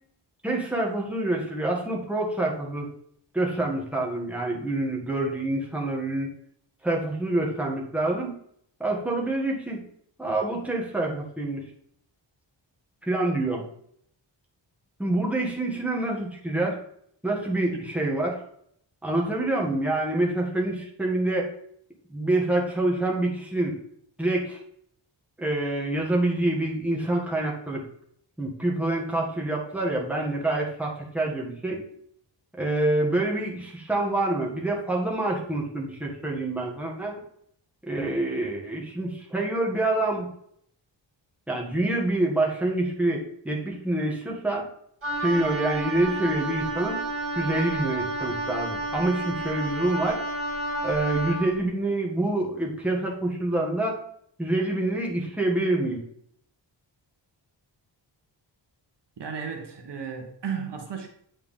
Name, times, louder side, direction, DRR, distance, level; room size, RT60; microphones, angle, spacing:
voice 1, 0.4-2.9 3.3-6.3 6.8-8.3 8.8-9.8 10.2-11.6 13.0-13.6 15.0-16.8 17.2-18.4 19.0-21.5 22.1-23.7 24.2-24.6 25.4-27.8 28.4-31.8 32.6-37.1 37.8-40.3 41.5-44.7 45.2-47.0 47.3-50.2 50.8-54.0 54.4-56.0, right 2 dB, 5° right, -2 dB, 1.6 m, -26 dB
Wind instrument woodwind instrument, 45.0-51.5, right 2 dB, 30° right, 2.3 m, -31 dB
voice 2, 59.2-61.1, right 6 dB, 65° right, 2 dB, 1.2 m, -34 dB
8.8 x 4.5 x 3.7 m, 0.66 s
wide cardioid pair, 145°, 45 cm